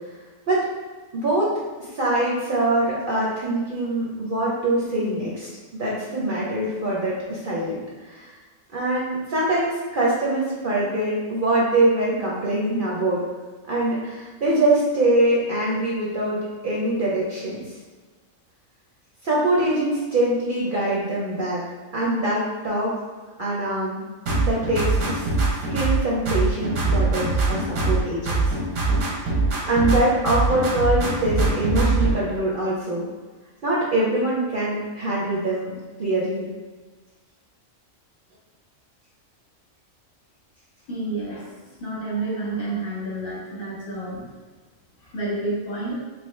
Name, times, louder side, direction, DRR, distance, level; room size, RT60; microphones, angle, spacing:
voice 1, 1.1-1.5 1.9-7.8 8.1-8.3 8.7-13.2 13.7-17.6 19.2-21.6 21.9-23.0 23.4-24.0 24.4-25.3 25.7-28.4 29.7-33.1 33.6-36.5, right 1 dB, 55° right, -5 dB, 0.6 m, -23 dB
sound 1, 24.3-26.0 26.3-28.0 28.3-30.0 30.3-32.1, right 3 dB, 85° right, 1.2 m, -22 dB
voice 2, 40.9-41.5 41.8-44.3 45.0-45.9, right 2 dB, 50° left, -5 dB, 0.9 m, -29 dB
3.2 x 2.9 x 3.1 m, 1.3 s
omnidirectional pair, 1.4 m